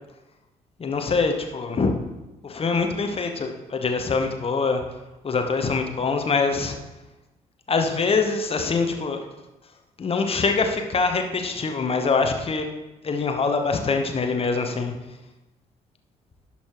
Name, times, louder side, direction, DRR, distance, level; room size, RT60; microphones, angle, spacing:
voice 1, 0.8-1.9 2.4-4.8 5.2-6.8 7.7-9.2 10.0-12.6 13.0-14.9, left 4 dB, 30° left, 5 dB, 1.0 m, -24 dB
10.5 x 5.6 x 3.1 m, 1.0 s
figure-of-eight pair, 40°, 20 cm